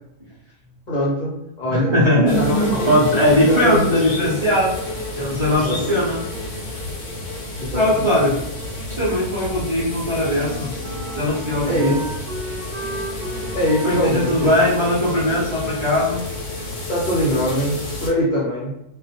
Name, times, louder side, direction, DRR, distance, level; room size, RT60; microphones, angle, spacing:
voice 1, 0.9-1.3 1.6-1.9 2.3-3.0 3.3-4.5 5.6-6.0 7.6-8.1 11.6-12.0 13.5-14.6 16.9-18.7, equal, 45° left, -6 dB, 0.8 m, -23 dB
voice 2, 1.7-4.7 5.2-6.2 7.7-8.4 8.9-10.7 11.1-12.0 13.8-16.2, left 1 dB, 45° right, -8 dB, 0.4 m, -19 dB
sound 1, 2.3-18.1, left 2 dB, 80° left, 1.0 m, -30 dB
Wind instrument woodwind instrument, 10.3-16.7, right 1 dB, 65° right, 0.8 m, -36 dB
2.2 x 2.0 x 2.8 m, 0.86 s
omnidirectional pair, 1.3 m